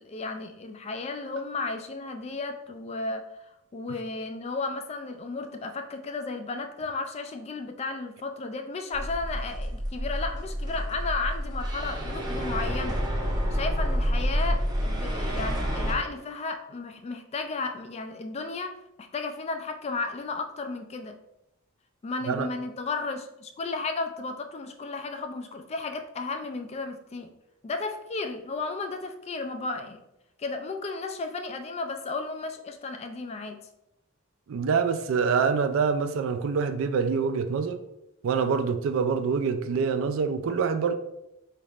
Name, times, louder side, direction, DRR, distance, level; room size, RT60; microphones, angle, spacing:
voice 1, 0.0-3.2 3.7-13.0 13.5-18.7 19.1-21.2 22.0-27.3 27.6-30.0 30.4-33.6, left 3 dB, 30° left, 0.3 m, -34 dB
sound 1, 8.9-15.9, equal, 20° right, 0.6 m, -29 dB
voice 2, 34.5-37.8 38.2-40.9, right 5 dB, 65° right, 0.3 m, -25 dB
4.0 x 3.3 x 2.4 m
head